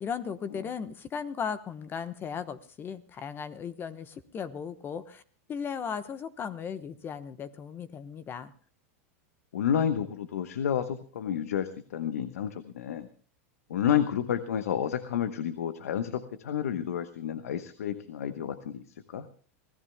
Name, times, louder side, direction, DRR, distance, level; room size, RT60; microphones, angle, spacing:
voice 1, 0.0-5.2 5.5-8.5, left 7 dB, 30° left, 13 dB, 1.0 m, -36 dB
voice 2, 9.5-13.1 13.7-19.3, left 9 dB, 90° left, 11 dB, 1.0 m, -30 dB
26.5 x 17.0 x 2.2 m, 0.42 s
hypercardioid pair, 120°, 8 cm